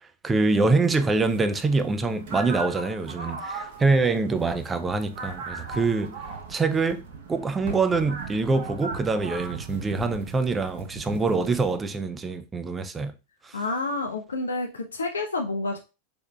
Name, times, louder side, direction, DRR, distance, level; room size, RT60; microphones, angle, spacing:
voice 1, 0.2-6.1 6.5-7.0 7.3-13.1 13.5-13.6, right 3 dB, 15° right, 0.4 m, -25 dB
sound 1, 0.5-11.7, right 4 dB, 55° right, 0.8 m, -38 dB
voice 2, 13.5-15.8, left 2 dB, 70° left, 0.5 m, -29 dB
4.3 x 3.5 x 2.3 m
figure-of-eight pair, 90°, 0 cm